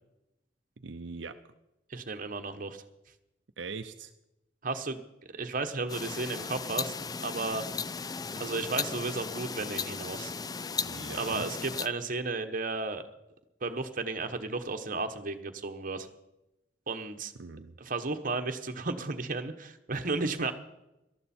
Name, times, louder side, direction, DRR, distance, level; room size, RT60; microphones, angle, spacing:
voice 1, 0.8-1.4 3.6-4.1 10.8-11.5 17.4-17.7, right 4 dB, 85° right, 7 dB, 0.7 m, -41 dB
voice 2, 1.9-2.8 4.6-5.0 5.3-6.9 7.2-7.6 8.4-10.3 11.1-13.0 13.6-16.1 16.9-17.3 17.8-20.5, right 3 dB, 50° right, 6 dB, 1.2 m, -33 dB
sound 1, 5.9-11.9, left 5 dB, 20° left, 0.4 m, -36 dB
18.5 x 13.0 x 4.4 m, 0.91 s
head